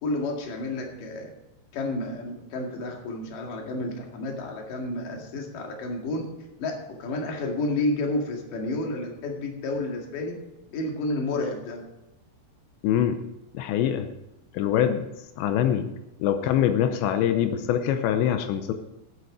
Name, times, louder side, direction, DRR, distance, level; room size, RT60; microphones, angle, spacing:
voice 1, 0.0-1.3 1.7-6.2 6.6-10.4 10.7-11.8, left 2 dB, 55° left, 1 dB, 3.3 m, -30 dB
voice 2, 12.8-13.2 13.5-14.1 14.5-15.0 15.4-15.9 16.2-18.7, left 10 dB, 90° left, 8 dB, 3.0 m, -24 dB
13.5 x 8.6 x 4.9 m, 0.94 s
omnidirectional pair, 5.2 m